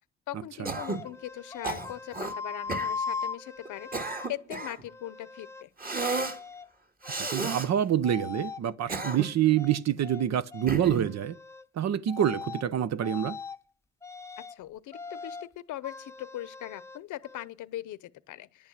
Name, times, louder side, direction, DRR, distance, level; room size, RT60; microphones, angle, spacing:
voice 1, 0.3-5.7 14.4-18.7, left 14 dB, 80° left, 0.9 m, -40 dB
Cough, 0.7-1.1 1.6-2.3 2.7-2.9 3.7-4.8 5.8-6.4 7.0-7.7 8.7-9.5 10.7-11.2, right 3 dB, 30° right, 2.0 m, -33 dB
sound 1, 0.8-4.3 4.9-5.7 6.0-6.7 7.0-7.7 8.0-8.6 9.0-10.2 10.5-10.7 11.0-11.7 12.1-12.6 13.0-13.6 14.0-14.6 14.9-15.5 15.8-17.5, left 5 dB, 10° left, 0.8 m, -40 dB
voice 2, 7.2-11.4 11.7-13.4, right 10 dB, 60° right, 0.8 m, -27 dB
10.5 x 8.8 x 8.3 m
cardioid pair, 90°, 30 cm